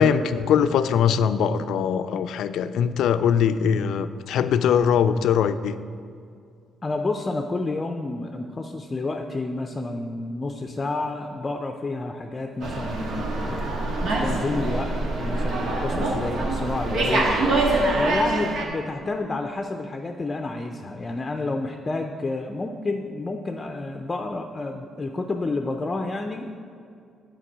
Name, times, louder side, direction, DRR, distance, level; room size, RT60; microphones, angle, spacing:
voice 1, 0.0-5.8, left 7 dB, 80° left, 11 dB, 0.4 m, -21 dB
voice 2, 6.8-13.7 14.0-17.6 17.9-26.6, left 2 dB, 25° left, 4 dB, 0.5 m, -30 dB
Slam, 12.6-18.6, right 2 dB, 75° right, 1.5 m, -25 dB
8.3 x 5.2 x 7.3 m, 2.3 s
cardioid pair, 90°, 0 cm